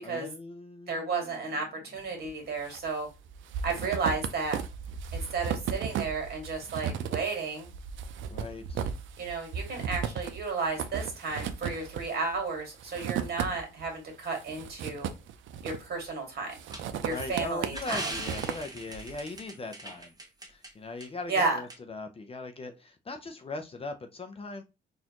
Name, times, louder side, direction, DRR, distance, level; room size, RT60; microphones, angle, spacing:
voice 1, 0.0-1.4 8.3-8.9 16.9-20.1 20.5-24.6, left 3 dB, 30° left, 0.5 m, -40 dB
voice 2, 0.9-3.1 3.6-4.6 5.1-7.7 9.2-15.1 15.6-16.6 17.0-18.1 21.3-21.6, right 4 dB, 55° right, 1.9 m, -32 dB
sound 1, 2.2-2.8 3.1-13.9 14.2-16.1 16.5-19.2, right 7 dB, 75° right, 0.5 m, -36 dB
sound 2, 16.7-20.7 21.0-21.1 21.7-21.8, right 2 dB, 20° right, 1.0 m, -40 dB
4.1 x 2.6 x 2.9 m
cardioid pair, 90°, 20 cm